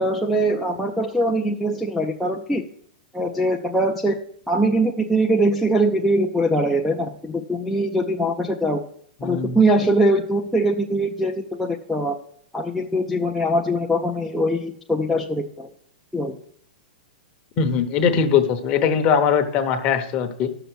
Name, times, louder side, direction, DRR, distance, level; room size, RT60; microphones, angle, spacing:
voice 1, 0.0-2.6 3.1-4.2 4.5-8.8 9.2-12.2 12.5-15.7 16.1-16.4, right 1 dB, ahead, -3 dB, 0.4 m, -22 dB
voice 2, 9.2-9.6 17.6-20.5, left 7 dB, 25° left, 7 dB, 0.8 m, -21 dB
11.0 x 6.8 x 6.2 m, 0.66 s
hypercardioid pair, 175°, 5 cm